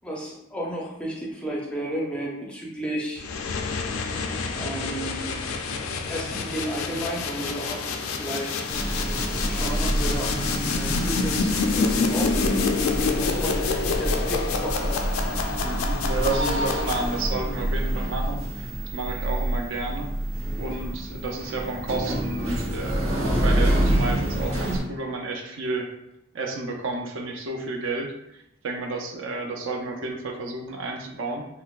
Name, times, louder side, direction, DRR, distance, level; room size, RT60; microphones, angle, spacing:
voice 1, 0.0-3.2 4.5-5.4 6.1-8.6 9.5-12.7 13.1-15.0, equal, 5° left, -3 dB, 0.4 m, -33 dB
sound 1, 3.2-17.5, left 4 dB, 80° left, 0.3 m, -28 dB
sound 2, 8.7-24.8, right 1 dB, 80° right, 0.8 m, -27 dB
voice 2, 15.6-20.1 20.6-25.9 26.3-28.4 28.6-31.5, right 3 dB, 65° right, 2 dB, 0.5 m, -31 dB
4.1 x 2.1 x 2.3 m, 0.84 s
head